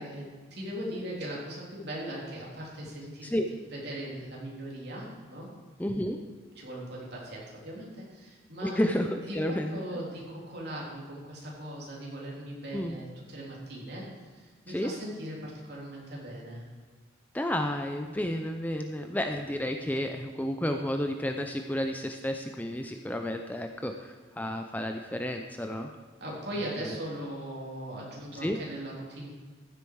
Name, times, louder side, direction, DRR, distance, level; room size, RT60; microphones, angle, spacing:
voice 1, 0.0-3.3 3.7-5.5 6.6-8.8 9.2-16.6 26.2-29.3, right 1 dB, 55° right, -4 dB, 3.5 m, -39 dB
voice 2, 5.8-6.2 8.6-9.8 12.7-13.0 14.7-14.9 17.3-25.9 26.9-27.0 28.4-28.6, left 1 dB, 10° left, 5 dB, 0.5 m, -31 dB
15.0 x 8.2 x 4.7 m, 1.4 s
head